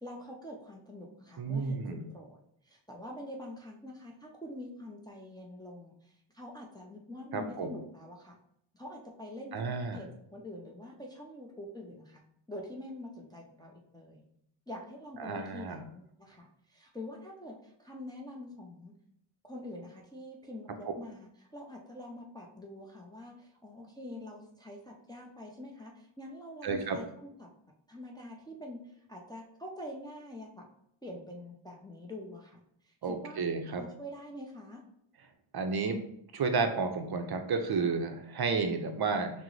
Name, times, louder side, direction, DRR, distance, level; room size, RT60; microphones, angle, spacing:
voice 1, 0.0-2.4 2.6-8.4 8.7-9.6 9.9-14.2 14.7-18.9 19.4-27.5 27.9-30.7 31.0-34.8, left 1 dB, 10° left, -1 dB, 0.4 m, -45 dB
voice 2, 1.4-2.0 7.3-7.7 9.5-10.0 15.2-15.8 26.6-27.0 33.0-33.8 35.5-36.0 36.3-39.3, right 4 dB, 55° right, 5 dB, 0.5 m, -31 dB
5.8 x 2.0 x 3.1 m, 0.73 s
wide cardioid pair, 175°, 47 cm